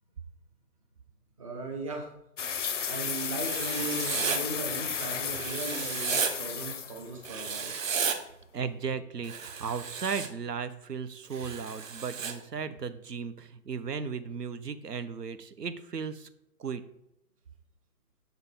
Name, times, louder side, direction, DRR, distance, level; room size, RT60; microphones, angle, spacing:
voice 1, 1.4-2.1 2.8-7.8, right 2 dB, 20° right, 2 dB, 0.7 m, -37 dB
sound 1, 2.4-7.7, left 7 dB, 55° left, 0.5 m, -34 dB
Writing, 3.4-4.4 5.3-6.3 7.2-8.2 9.2-10.3 11.3-12.3, right 6 dB, 55° right, 0.9 m, -33 dB
voice 2, 8.5-16.3 16.6-16.8, right 6 dB, 85° right, 11 dB, 0.8 m, -36 dB
7.0 x 3.8 x 3.7 m, 0.85 s
figure-of-eight pair, 145°, 47 cm